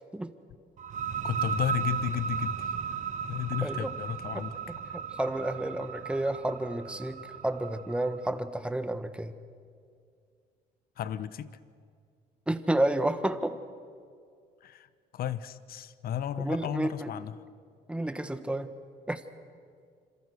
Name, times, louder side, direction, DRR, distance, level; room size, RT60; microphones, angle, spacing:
sound 1, 0.8-8.3, right 7 dB, 45° right, 1.5 m, -35 dB
voice 1, 1.2-3.0 3.3-4.6 11.0-11.6 14.6-17.4, left 10 dB, 60° left, 15 dB, 1.1 m, -34 dB
voice 2, 3.6-3.9 4.9-9.3 12.5-13.6 16.4-17.1 17.9-18.7 19.1-19.2, right 1 dB, 5° right, 10 dB, 1.5 m, -30 dB
27.0 x 27.0 x 6.6 m, 2.2 s
cardioid pair, 110°, 17 cm